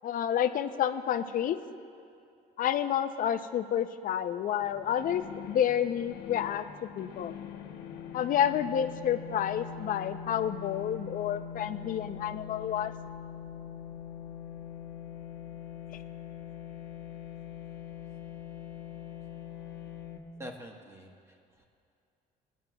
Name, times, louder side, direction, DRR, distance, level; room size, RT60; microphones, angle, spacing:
voice 1, 0.0-1.6 2.6-7.3 8.1-12.9, left 9 dB, 55° left, 10 dB, 0.5 m, -29 dB
sound 1, 4.6-20.2, left 8 dB, 85° left, 1.0 m, -43 dB
voice 2, 20.4-21.7, equal, 15° right, 1 dB, 1.3 m, -46 dB
22.5 x 9.3 x 2.3 m, 2.5 s
cardioid pair, 110°, 17 cm